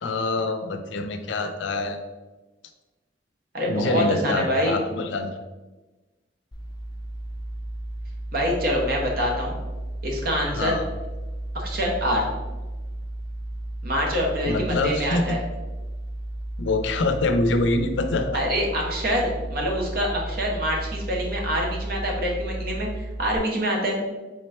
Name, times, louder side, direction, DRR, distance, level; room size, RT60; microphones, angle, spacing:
voice 1, 0.0-2.0 3.7-5.4 10.5-10.9 14.5-15.4 16.6-18.5, left 2 dB, 85° left, 7 dB, 0.5 m, -25 dB
voice 2, 3.5-4.8 8.3-9.6 10.0-10.7 11.5-12.3 13.8-15.4 18.3-22.9 23.2-24.0, equal, 55° right, -1 dB, 1.0 m, -25 dB
sound 1, 6.5-23.4, right 1 dB, 20° left, 0.4 m, -33 dB
4.1 x 3.8 x 3.2 m, 1.2 s
head